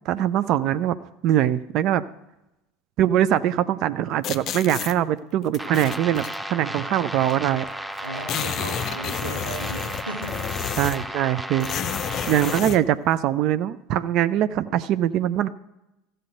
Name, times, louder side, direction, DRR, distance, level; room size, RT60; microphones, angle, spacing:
voice 1, 0.1-1.0 1.2-2.0 3.0-7.7 10.8-11.7 12.3-15.5, right 11 dB, 50° right, 13 dB, 0.4 m, -22 dB
sound 1, 4.2-4.9 5.5-6.4 7.3-7.4 7.6-7.7 8.0-11.1 11.6-12.8, left 9 dB, 40° left, 0.6 m, -30 dB
sound 2, 5.6-12.6, right 1 dB, 5° right, 0.6 m, -34 dB
voice 2, 8.0-10.5 11.5-12.1 14.2-14.6, right 2 dB, 85° right, -3 dB, 1.7 m, -37 dB
14.5 x 7.7 x 3.9 m, 0.92 s
figure-of-eight pair, 70°, 0 cm